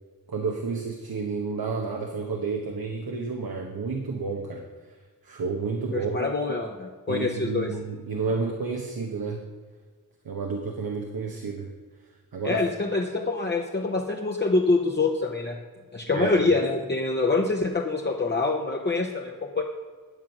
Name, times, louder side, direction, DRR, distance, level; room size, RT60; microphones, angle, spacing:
voice 1, 0.3-4.6 5.2-6.3 7.1-9.4 10.2-11.7 12.3-12.6 16.1-16.4, right 4 dB, 80° right, 2 dB, 1.2 m, -30 dB
voice 2, 5.9-7.7 12.4-15.6 15.9-19.6, left 3 dB, 30° left, 0 dB, 0.9 m, -25 dB
11.0 x 7.3 x 6.0 m, 1.5 s
wide cardioid pair, 100°, 35 cm